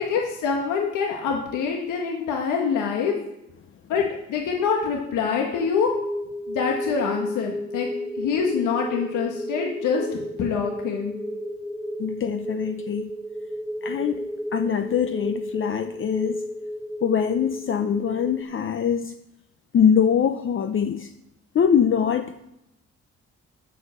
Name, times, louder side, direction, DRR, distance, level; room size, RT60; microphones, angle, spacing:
voice 1, 0.0-3.1 3.9-5.9 6.5-7.9 8.1-11.1, left 6 dB, 85° left, 1.6 m, -25 dB
sound 1, 5.5-18.4, equal, ahead, 0.9 m, -32 dB
voice 2, 12.0-13.1 13.8-14.2 14.5-16.4 17.0-19.1 19.7-21.1 21.5-22.5, left 8 dB, 45° left, 0.6 m, -23 dB
12.5 x 5.3 x 7.1 m
cardioid pair, 90°, 30 cm